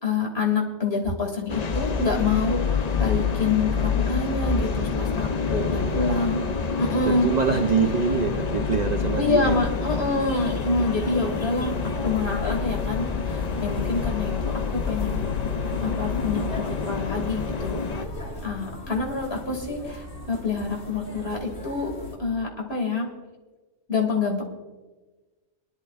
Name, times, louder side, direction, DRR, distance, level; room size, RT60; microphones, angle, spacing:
voice 1, 0.0-6.4 6.8-7.3 9.2-11.7 12.0-15.2 15.8-17.9 18.4-21.9 22.2-23.1 23.9-24.4, left 3 dB, 60° left, 0 dB, 2.7 m, -27 dB
sound 1, 1.5-18.1, left 5 dB, 45° left, 0.6 m, -27 dB
voice 2, 5.6-6.4 7.1-9.6, right 6 dB, 45° right, 5 dB, 0.6 m, -25 dB
sound 2, 9.5-22.2, left 1 dB, 85° left, 2.5 m, -38 dB
23.5 x 11.5 x 2.4 m, 1.2 s
omnidirectional pair, 1.2 m